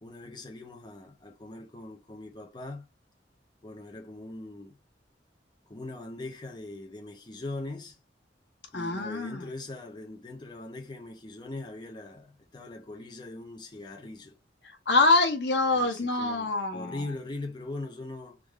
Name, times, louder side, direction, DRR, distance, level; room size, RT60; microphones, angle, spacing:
voice 1, 0.0-2.9 3.6-4.7 5.7-8.0 8.7-14.4 15.7-18.4, left 2 dB, 25° left, 0.7 m, -41 dB
voice 2, 8.7-9.4 14.6-17.0, left 3 dB, 75° left, 1.1 m, -25 dB
3.6 x 2.5 x 3.1 m
head